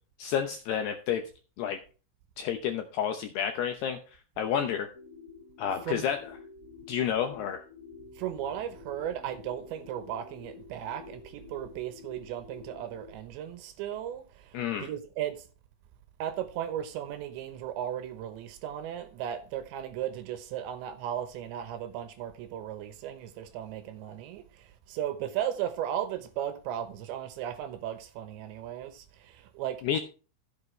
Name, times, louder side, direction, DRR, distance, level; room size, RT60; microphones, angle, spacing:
voice 1, 0.2-1.2 1.6-1.8 2.4-4.0 4.4-4.9 5.6-6.2 6.9-7.6 14.5-14.9 29.8-30.0, left 8 dB, 80° left, 2.4 m, -30 dB
sound 1, 4.9-13.1, left 5 dB, 35° left, 1.4 m, -49 dB
voice 2, 8.2-15.5 16.2-30.0, right 10 dB, 75° right, 3.0 m, -36 dB
15.0 x 8.1 x 3.2 m
omnidirectional pair, 5.8 m